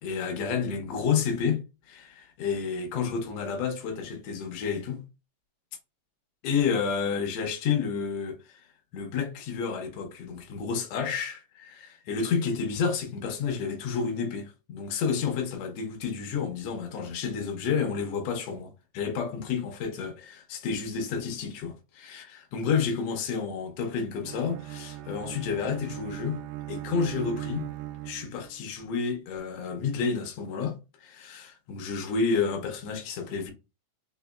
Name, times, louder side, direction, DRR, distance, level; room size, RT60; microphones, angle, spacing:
voice 1, 0.0-5.0 6.4-8.7 8.9-26.4 26.7-27.7 28.0-33.5, left 6 dB, 85° left, 1.4 m, -30 dB
Bowed string instrument, 24.2-28.7, right 14 dB, 85° right, 2.3 m, -39 dB
5.3 x 2.9 x 2.2 m
omnidirectional pair, 4.0 m